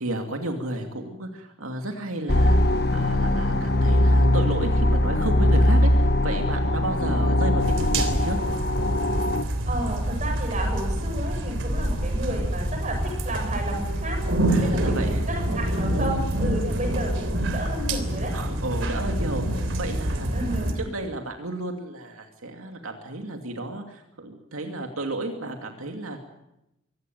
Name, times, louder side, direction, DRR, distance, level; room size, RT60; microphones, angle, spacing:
voice 1, 0.0-2.6 2.9-8.4 14.5-15.2 15.6-15.7 16.7-16.8 18.3-20.3 20.8-26.2, right 2 dB, 85° right, 4 dB, 2.5 m, -32 dB
sound 1, 2.3-9.4, left 1 dB, 50° left, 1.3 m, -21 dB
sound 2, 7.6-20.7, right 1 dB, 65° right, 3.3 m, -26 dB
voice 2, 9.7-14.2 14.6-18.3 20.3-20.8, right 1 dB, 35° right, 2 dB, 8.0 m, -32 dB
24.0 x 17.0 x 9.4 m, 0.88 s
head